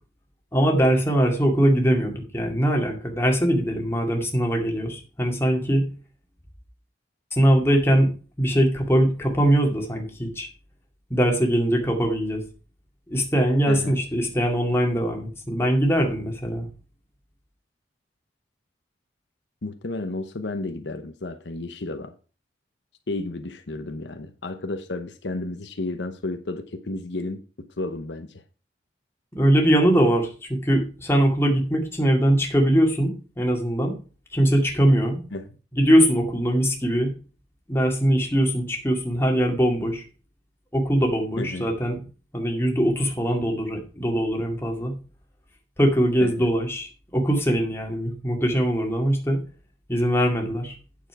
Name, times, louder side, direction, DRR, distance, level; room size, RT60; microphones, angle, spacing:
voice 1, 0.5-5.9 7.3-8.1 8.4-10.5 11.1-12.4 13.1-16.7 29.3-33.9 34.3-35.2 35.8-37.1 37.7-40.0 40.7-42.0 42.3-44.9 45.8-49.4 49.9-50.7, equal, 15° left, 2.2 m, -21 dB
voice 2, 13.7-14.0 19.6-22.1 23.1-28.4 35.3-35.4 41.4-41.7 46.2-46.5, left 2 dB, 75° left, 0.9 m, -32 dB
9.0 x 7.1 x 4.7 m
head